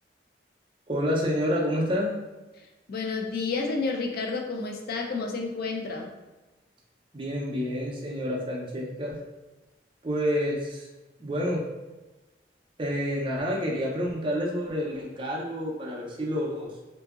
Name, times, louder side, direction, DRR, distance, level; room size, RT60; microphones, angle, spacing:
voice 1, 0.9-2.1 7.1-9.2 10.0-10.9 11.2-11.6 12.8-16.7, equal, 30° right, -3 dB, 0.5 m, -28 dB
voice 2, 2.9-6.1, left 4 dB, 55° left, 1 dB, 0.4 m, -30 dB
2.7 x 2.6 x 2.4 m, 1.1 s
head